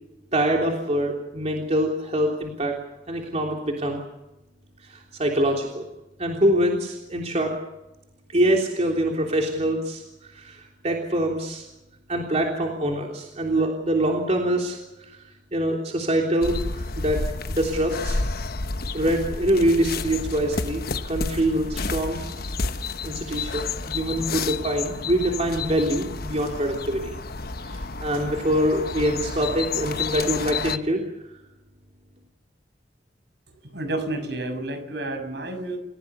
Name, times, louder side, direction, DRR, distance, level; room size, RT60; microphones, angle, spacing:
voice 1, 0.3-2.7 3.1-4.0 4.8-5.8 6.2-7.5 8.3-11.7 12.1-15.2 15.5-17.2 17.5-18.2 18.9-22.3 22.5-22.6 23.0-27.2 27.6-31.0, right 1 dB, 40° right, 1 dB, 3.4 m, -24 dB
sound 1, 16.4-30.8, left 3 dB, 60° left, 1.1 m, -30 dB
voice 2, 33.7-35.8, right 2 dB, 70° right, 7 dB, 6.5 m, -30 dB
29.5 x 16.5 x 7.0 m, 0.96 s
head